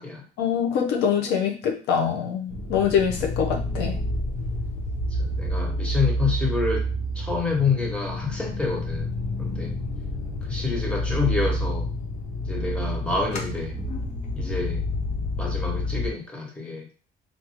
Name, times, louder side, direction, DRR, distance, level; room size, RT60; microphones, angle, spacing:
voice 1, 0.4-4.0, left 7 dB, 85° left, 2 dB, 0.8 m, -24 dB
sound 1, 2.5-16.1, equal, 45° left, 0.8 m, -29 dB
voice 2, 5.2-6.9 7.1-9.1 9.4-9.8 10.5-11.9 12.5-13.7 14.4-14.9 15.4-16.9, left 4 dB, 5° left, 0 dB, 1.1 m, -28 dB
3.6 x 2.6 x 3.1 m, 0.36 s
cardioid pair, 110°, 17 cm